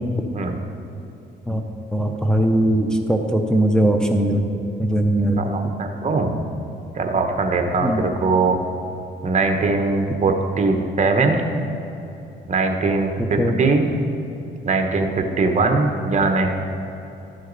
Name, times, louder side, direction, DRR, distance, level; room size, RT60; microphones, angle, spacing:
voice 1, 1.9-4.5 4.8-5.6 7.8-8.0 13.2-13.5, right 1 dB, 5° left, 2 dB, 0.7 m, -20 dB
voice 2, 5.4-6.4 6.9-8.6 9.2-11.4 12.5-13.9 14.6-16.5, right 3 dB, 35° right, 4 dB, 1.1 m, -21 dB
12.0 x 6.4 x 4.0 m, 3.0 s
cardioid pair, 90°, 20 cm